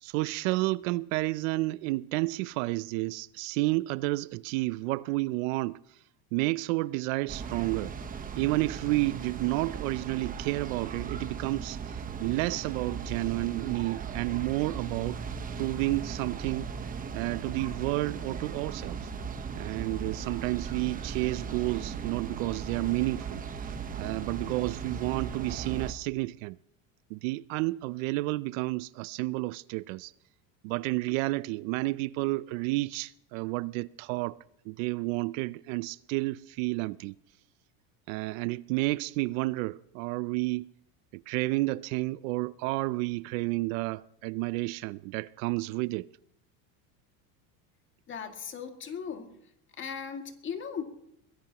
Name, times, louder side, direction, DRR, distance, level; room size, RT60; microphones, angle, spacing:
voice 1, 0.0-5.8 6.3-7.9 8.4-15.2 15.6-16.7 17.1-19.1 19.5-26.6 27.1-30.1 30.6-34.4 34.6-37.1 38.1-40.7 41.1-46.1, right 21 dB, 65° right, 0.5 m, -31 dB
sound 1, 7.3-25.9, right 6 dB, 20° right, 1.1 m, -37 dB
voice 2, 48.1-49.3 49.8-50.8, left 7 dB, 30° left, 2.2 m, -37 dB
23.0 x 16.5 x 2.9 m
supercardioid pair, 145°, 42 cm